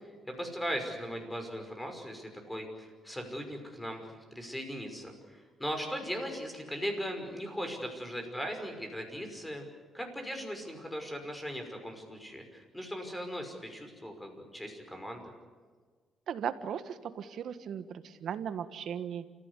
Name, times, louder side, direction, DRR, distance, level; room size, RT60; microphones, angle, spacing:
voice 1, 0.0-4.1 4.3-9.7 9.9-15.2, equal, 10° left, 5 dB, 5.7 m, -38 dB
voice 2, 16.3-19.3, right 8 dB, 65° right, 11 dB, 1.5 m, -37 dB
28.5 x 15.5 x 8.4 m, 1.5 s
cardioid pair, 90°, 0 cm